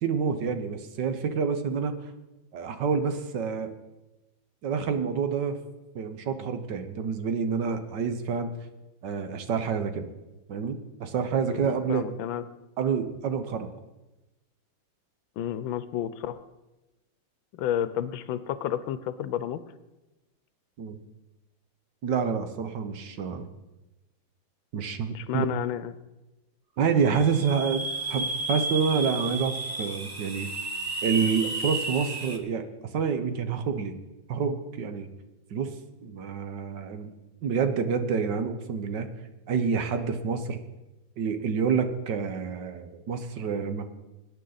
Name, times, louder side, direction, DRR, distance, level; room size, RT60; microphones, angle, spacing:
voice 1, 0.0-1.9 2.5-3.7 4.6-5.6 5.9-8.5 9.0-10.1 10.5-12.1 12.8-13.7 20.8-21.0 22.0-23.5 24.7-25.5 26.8-27.8 28.1-30.5 31.0-33.9 34.3-35.1 35.5-35.7 36.0-37.1 37.4-39.1 39.5-40.6 41.2-43.9, right 6 dB, 65° right, 9 dB, 1.5 m, -28 dB
voice 2, 11.5-12.4 15.4-16.4 17.6-19.6 25.1-25.9, left 10 dB, 75° left, 14 dB, 1.4 m, -31 dB
sound 1, 27.0-32.4, right 2 dB, 30° right, 0.7 m, -32 dB
21.0 x 9.6 x 4.0 m, 1.0 s
omnidirectional pair, 2.2 m